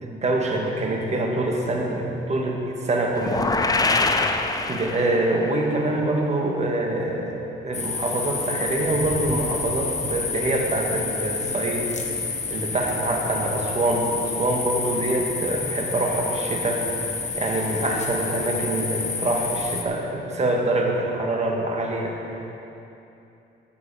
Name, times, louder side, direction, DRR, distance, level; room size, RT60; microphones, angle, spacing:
voice 1, 0.0-3.4 4.6-17.1 17.4-22.5, right 2 dB, 35° right, 0 dB, 1.8 m, -25 dB
sound 1, 3.2-5.4, left 3 dB, 20° left, 0.7 m, -23 dB
sound 2, 7.7-19.8, left 4 dB, 35° left, 1.3 m, -29 dB
12.5 x 8.4 x 5.0 m, 2.9 s
cardioid pair, 90°, 20 cm